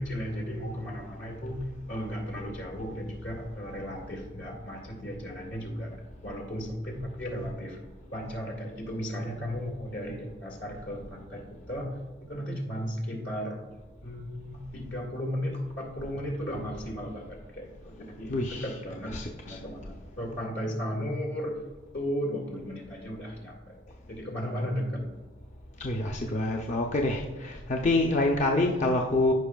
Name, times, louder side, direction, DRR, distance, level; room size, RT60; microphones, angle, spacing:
voice 1, 0.0-1.6 1.9-7.8 8.1-13.6 14.0-19.1 19.4-21.6 21.9-23.8 24.1-25.1, equal, 75° left, 0 dB, 2.1 m, -35 dB
voice 2, 18.3-18.8 19.1-19.6 25.8-29.3, left 2 dB, 40° left, 1 dB, 0.6 m, -27 dB
14.0 x 5.3 x 2.4 m, 1.3 s
head